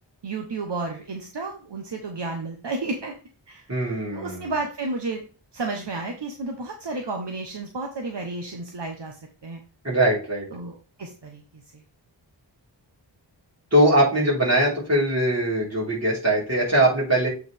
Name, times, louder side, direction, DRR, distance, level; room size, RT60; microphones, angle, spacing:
voice 1, 0.2-3.1 3.5-3.7 4.1-5.2 5.5-9.6 10.5-11.4 11.7-11.8, right 3 dB, 65° right, 3 dB, 1.1 m, -32 dB
voice 2, 3.7-4.5 9.8-10.5 13.7-17.3, right 1 dB, 35° right, -6 dB, 4.4 m, -21 dB
8.3 x 4.8 x 3.5 m, 0.37 s
wide cardioid pair, 60°, 44 cm